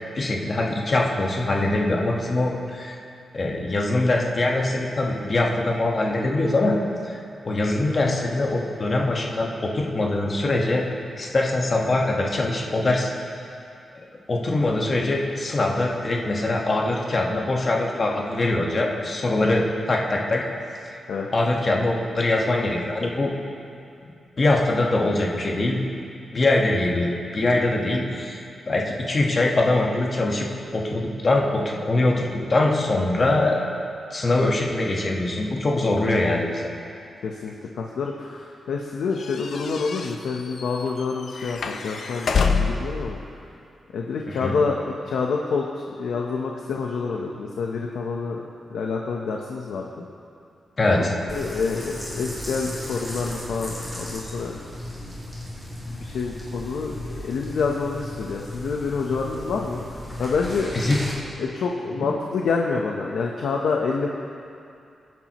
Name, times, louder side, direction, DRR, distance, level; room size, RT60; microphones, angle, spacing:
voice 1, 0.1-3.0 3.3-6.8 7.0-7.2 7.4-10.8 11.1-13.1 14.3-20.4 20.9-21.0 21.3-23.3 24.4-25.8 26.3-28.4 28.7-30.5 30.7-32.2 32.5-33.6 34.1-36.7 44.3-44.6 50.8-51.1 60.7-61.0 62.0-62.1, left 2 dB, 30° left, -1 dB, 1.5 m, -23 dB
voice 2, 37.2-43.2 43.9-48.4 48.7-50.1 50.9-51.0 51.3-54.6 55.9-59.8 60.2-60.7 61.4-64.1, left 4 dB, 85° left, 0 dB, 1.0 m, -27 dB
sound 1, 39.2-42.9, left 5 dB, 55° left, 0.7 m, -27 dB
sound 2, 51.3-61.1, left 1 dB, ahead, 3.1 m, -35 dB
23.5 x 11.0 x 3.1 m, 2.5 s
wide cardioid pair, 170°, 0 cm